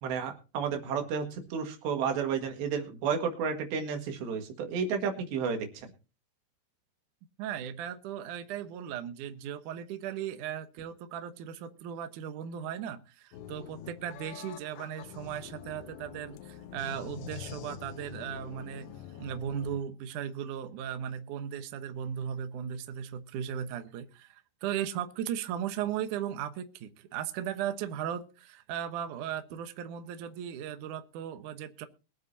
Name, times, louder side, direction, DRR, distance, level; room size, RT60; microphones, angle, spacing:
voice 1, 0.0-5.9, right 6 dB, 85° right, 4.0 m, -32 dB
voice 2, 7.4-18.9 19.2-31.9, right 9 dB, 70° right, 2.0 m, -37 dB
sound 1, 13.3-19.8, left 10 dB, 85° left, 3.0 m, -46 dB
23.0 x 8.3 x 2.7 m
omnidirectional pair, 4.8 m